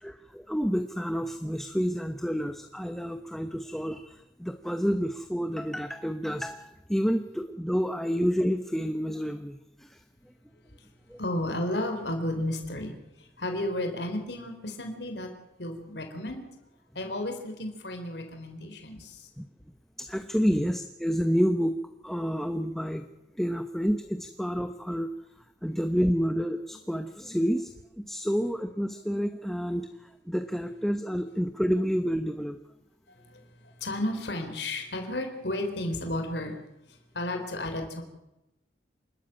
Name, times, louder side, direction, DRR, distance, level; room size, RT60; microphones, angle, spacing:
voice 1, 0.0-10.0 11.1-11.2 19.4-19.5 20.0-23.1 23.4-25.1 25.6-29.9 30.2-32.6, equal, ahead, 8 dB, 0.9 m, -29 dB
voice 2, 11.2-15.3 15.6-16.4 16.9-19.3 20.5-20.7 33.1-36.6 36.9-38.0, left 1 dB, 70° left, 5 dB, 4.0 m, -33 dB
28.0 x 13.0 x 9.0 m, 0.92 s
head